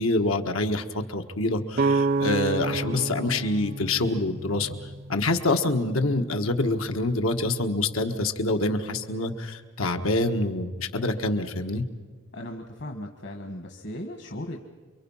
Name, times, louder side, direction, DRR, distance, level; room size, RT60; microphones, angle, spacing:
voice 1, 0.0-11.8, left 2 dB, 85° left, 6 dB, 1.6 m, -26 dB
sound 1, 1.8-5.6, right 3 dB, 45° right, 0.6 m, -28 dB
voice 2, 12.3-14.6, left 1 dB, 60° left, 3 dB, 1.5 m, -37 dB
29.0 x 23.5 x 5.7 m, 1.5 s
head